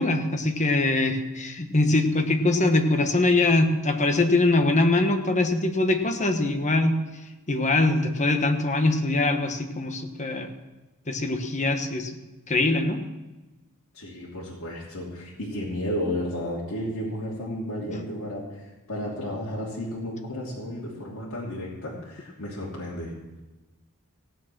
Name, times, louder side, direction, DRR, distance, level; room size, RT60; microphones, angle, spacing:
voice 1, 0.0-7.0 7.5-10.5 11.1-12.2 12.5-13.0, left 2 dB, 35° left, 6 dB, 1.3 m, -23 dB
voice 2, 13.9-23.1, equal, 70° left, -6 dB, 3.0 m, -33 dB
16.0 x 9.1 x 6.1 m, 1.1 s
head